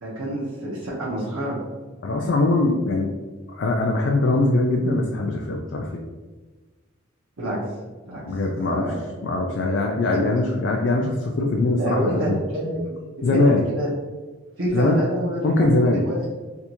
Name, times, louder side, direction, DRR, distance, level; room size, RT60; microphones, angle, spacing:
voice 1, 0.0-1.6 7.4-7.6 8.1-8.2 8.6-8.9 11.8-12.9 13.3-13.5 13.7-13.9 14.6-16.2, right 1 dB, 85° right, -8 dB, 1.1 m, -27 dB
voice 2, 2.0-3.2 3.5-6.0 8.3-8.9 9.2-12.4 13.2-13.7 14.7-15.0 15.4-16.0, left 2 dB, 55° left, 1 dB, 0.4 m, -21 dB
3.5 x 2.6 x 2.9 m, 1.3 s
head